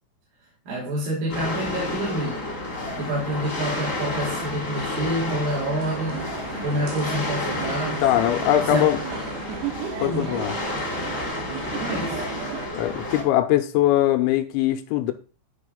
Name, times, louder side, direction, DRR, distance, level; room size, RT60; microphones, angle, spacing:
voice 1, 0.7-2.5 3.0-6.3 6.6-8.0 8.6-8.9 10.1-10.3 11.8-12.2, right 1 dB, 50° right, 4.2 m, -28 dB
sound 1, 1.3-13.2, left 2 dB, 25° left, 1.6 m, -30 dB
sound 2, 5.8-12.7, right 7 dB, 80° right, 3.8 m, -35 dB
voice 2, 8.0-9.0 10.0-10.6 12.7-15.1, left 13 dB, 85° left, 3.2 m, -21 dB
10.5 x 5.4 x 4.0 m
omnidirectional pair, 5.4 m